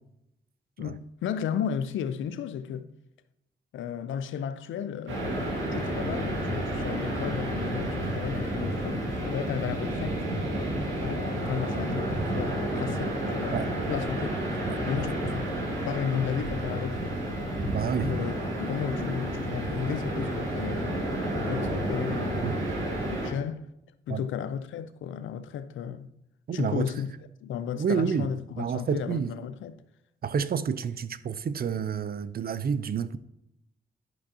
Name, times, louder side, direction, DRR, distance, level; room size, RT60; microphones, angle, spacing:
voice 1, 0.8-2.9 3.7-5.4 5.7-10.2 11.0-14.4 14.9-15.4 15.9-17.2 17.8-22.5 23.1-23.7 24.1-26.1 26.5-27.1 27.4-29.8, left 8 dB, 80° left, 0.5 m, -34 dB
sound 1, 5.1-23.3, right 1 dB, 85° right, 1.8 m, -30 dB
voice 2, 17.7-18.1 22.4-22.5 24.1-24.2 26.5-26.9 27.8-28.3 28.6-29.4 30.2-33.2, right 7 dB, 50° right, 0.5 m, -29 dB
11.0 x 5.2 x 2.8 m
supercardioid pair, 50°, 20 cm